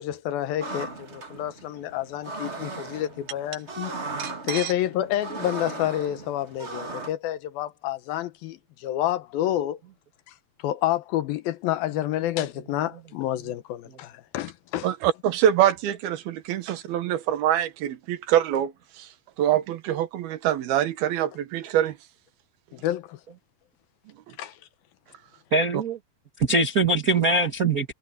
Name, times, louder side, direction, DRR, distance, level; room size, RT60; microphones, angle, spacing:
voice 1, 0.0-3.9 4.5-8.6 8.8-9.8 10.6-14.9 22.8-23.2 24.4-24.5, left 12 dB, 80° left, 2.8 m, -29 dB
sound 1, 0.6-7.1, right 3 dB, 30° right, 1.2 m, -37 dB
voice 2, 4.2-4.7 14.8-19.1 19.4-22.0, right 11 dB, 85° right, 3.4 m, -25 dB
voice 3, 25.5-26.0 26.4-27.9, right 3 dB, 50° right, 1.0 m, -22 dB
omnidirectional pair, 4.2 m